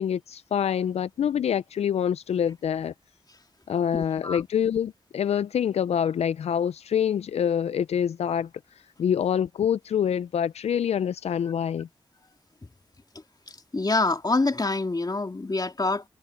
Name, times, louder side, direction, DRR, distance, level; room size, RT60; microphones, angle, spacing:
voice 1, 0.0-2.9 3.7-8.5 9.0-11.9, left 8 dB, 80° left, 0.4 m, -26 dB
voice 2, 3.9-4.4 13.5-16.0, left 3 dB, 40° left, 2.4 m, -26 dB
cardioid pair, 40°, 11 cm